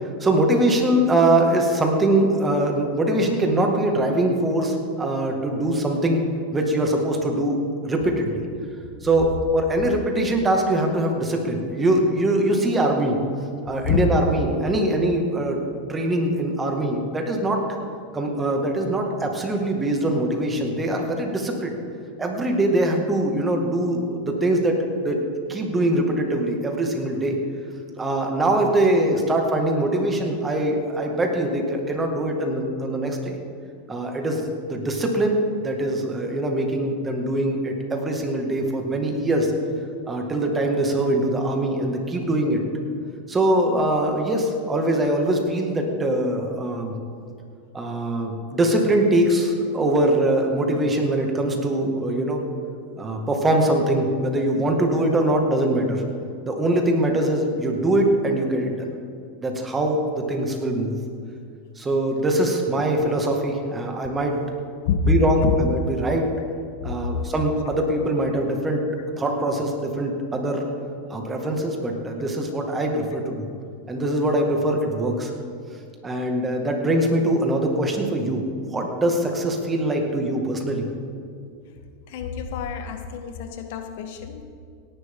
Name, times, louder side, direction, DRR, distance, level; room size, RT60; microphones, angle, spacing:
voice 1, 0.2-6.2 6.5-7.6 7.8-8.4 9.0-13.2 13.6-15.6 15.9-17.7 18.1-21.7 22.2-25.2 25.5-27.4 28.0-33.4 33.9-39.5 40.1-42.6 43.3-46.9 47.7-52.4 53.0-56.0 56.4-58.9 59.4-60.9 61.8-64.4 65.1-66.3 66.8-68.9 69.2-70.6 71.1-73.5 73.9-75.3 76.0-80.8, right 1 dB, 15° right, 2 dB, 2.0 m, -22 dB
voice 2, 82.1-84.4, left 6 dB, 65° left, 7 dB, 1.3 m, -27 dB
17.5 x 11.0 x 3.8 m, 2.3 s
supercardioid pair, 125°, 0 cm